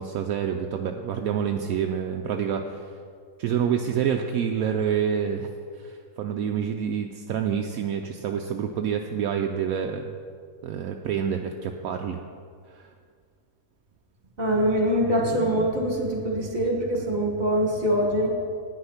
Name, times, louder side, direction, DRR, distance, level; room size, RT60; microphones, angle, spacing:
voice 1, 0.0-2.9 3.4-5.5 5.8-10.1 10.6-12.2 12.7-12.9, right 8 dB, 70° right, 3 dB, 1.0 m, -27 dB
voice 2, 14.4-18.3, equal, 30° right, 0 dB, 1.9 m, -24 dB
9.8 x 9.6 x 5.8 m, 2.1 s
omnidirectional pair, 1.6 m